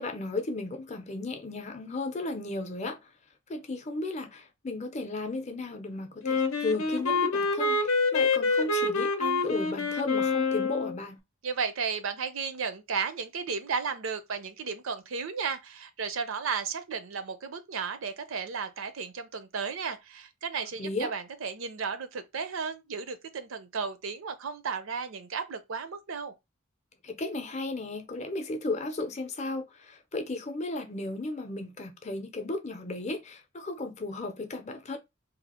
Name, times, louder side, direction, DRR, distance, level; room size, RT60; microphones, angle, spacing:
voice 1, 0.0-3.0 3.5-11.2 20.8-21.1 27.0-35.0, left 2 dB, 30° left, 0.5 m, -35 dB
Wind instrument woodwind instrument, 6.2-11.0, left 3 dB, 80° left, 0.6 m, -26 dB
voice 2, 11.4-26.3, right 5 dB, 70° right, 0.5 m, -34 dB
2.7 x 2.4 x 4.2 m
head